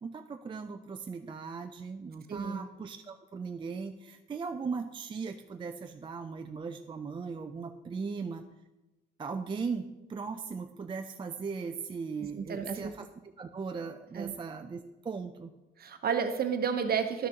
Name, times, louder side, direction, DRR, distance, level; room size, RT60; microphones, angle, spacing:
voice 1, 0.0-8.4 9.2-15.5, right 5 dB, 25° right, 6 dB, 0.4 m, -38 dB
voice 2, 12.4-12.9 14.1-14.3 15.8-17.3, right 6 dB, 50° right, 7 dB, 0.9 m, -31 dB
11.5 x 6.1 x 2.8 m, 1.1 s
cardioid pair, 90°, 20 cm